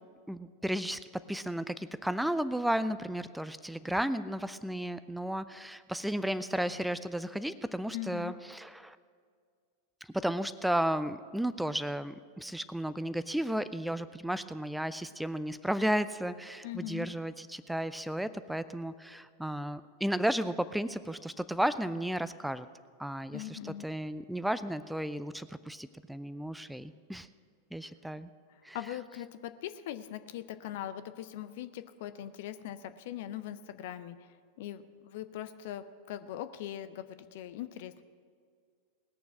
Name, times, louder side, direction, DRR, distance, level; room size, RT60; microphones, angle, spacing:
voice 1, 0.3-9.0 10.0-22.7 23.0-27.3 27.7-28.3 28.6-28.8, right 1 dB, ahead, 14 dB, 0.4 m, -33 dB
voice 2, 7.9-8.3 16.6-17.1 23.3-23.9 28.5-34.2 34.6-38.0, left 12 dB, 50° left, 12 dB, 0.5 m, -41 dB
19.0 x 7.0 x 6.1 m, 2.1 s
figure-of-eight pair, 90°, 0 cm